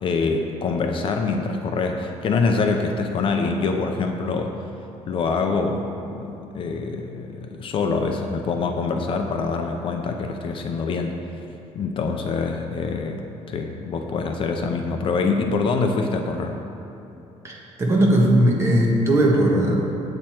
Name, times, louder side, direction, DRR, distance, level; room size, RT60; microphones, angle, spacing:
voice 1, 0.0-4.6 5.1-11.4 11.7-16.6, left 4 dB, 45° left, 4 dB, 0.6 m, -25 dB
voice 2, 17.4-19.8, right 1 dB, 25° right, -2 dB, 1.4 m, -18 dB
8.9 x 8.5 x 4.5 m, 2.9 s
cardioid pair, 160°, 12 cm